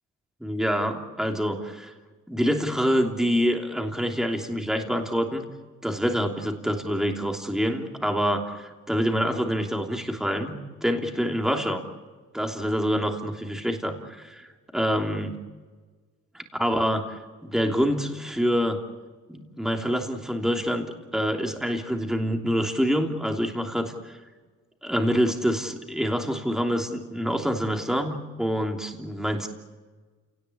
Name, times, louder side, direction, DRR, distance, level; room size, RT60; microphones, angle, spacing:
voice 1, 0.4-1.9 2.3-5.4 5.8-10.5 10.8-11.8 12.3-14.5 14.7-15.4 16.5-18.8 19.3-24.2 24.8-29.5, equal, ahead, 3 dB, 3.0 m, -26 dB
29.5 x 18.5 x 8.6 m, 1.4 s
cardioid pair, 90°, 30 cm